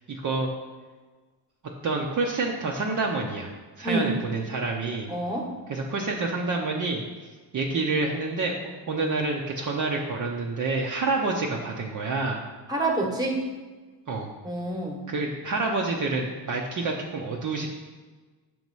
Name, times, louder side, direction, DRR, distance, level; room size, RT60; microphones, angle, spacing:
voice 1, 0.1-0.5 1.8-3.5 3.8-5.1 5.7-7.0 7.5-8.5 8.9-12.4 14.1-14.3 15.1-17.7, right 3 dB, 45° right, -1 dB, 0.7 m, -28 dB
voice 2, 5.1-5.5 12.7-13.4 14.4-15.0, right 2 dB, 10° right, 0 dB, 1.1 m, -27 dB
6.9 x 3.1 x 5.3 m, 1.3 s
cardioid pair, 115°, 44 cm